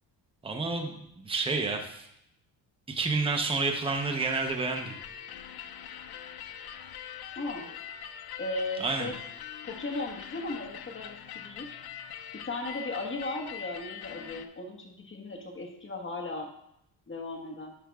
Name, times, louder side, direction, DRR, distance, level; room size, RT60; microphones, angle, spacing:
voice 1, 0.4-2.1 2.9-4.9 8.8-9.1, right 3 dB, 10° right, 3 dB, 0.7 m, -30 dB
sound 1, 3.9-14.5, left 9 dB, 55° left, 0.5 m, -43 dB
voice 2, 7.3-7.7 8.4-9.1 9.7-11.7 12.4-16.5 17.1-17.7, left 2 dB, 25° left, 1 dB, 1.4 m, -36 dB
10.5 x 5.9 x 2.4 m, 0.77 s
cardioid pair, 100°, 45 cm